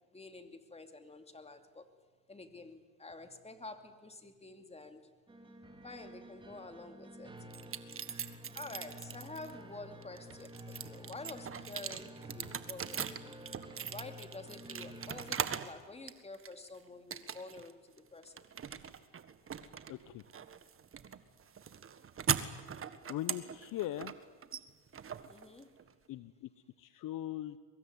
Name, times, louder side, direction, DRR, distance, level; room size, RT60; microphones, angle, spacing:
voice 1, 0.1-1.8 2.3-5.0 5.8-7.3 8.5-13.4 13.9-18.5 25.3-25.7, left 3 dB, 15° left, 7 dB, 2.8 m, -49 dB
sound 1, 5.3-15.4, right 1 dB, 10° right, 3.1 m, -51 dB
sound 2, 7.5-9.5 10.0-15.8 16.1-16.7 17.1-17.7 18.0-25.9, right 8 dB, 30° right, 1.6 m, -40 dB
voice 2, 19.9-20.2 23.1-24.1 26.1-26.5 26.8-27.6, left 13 dB, 50° left, 14 dB, 1.0 m, -40 dB
23.5 x 22.0 x 9.6 m, 1.4 s
supercardioid pair, 95°, 41 cm